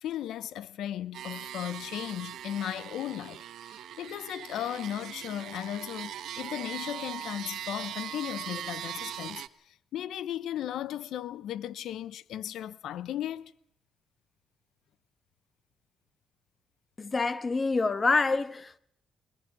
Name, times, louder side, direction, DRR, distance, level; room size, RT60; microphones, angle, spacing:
voice 1, 0.0-13.5, left 11 dB, 85° left, 0.9 m, -36 dB
sound 1, 1.1-9.5, right 11 dB, 80° right, 1.1 m, -40 dB
voice 2, 17.0-18.8, left 3 dB, 35° left, 1.3 m, -26 dB
21.5 x 21.0 x 6.1 m
cardioid pair, 85°, 0 cm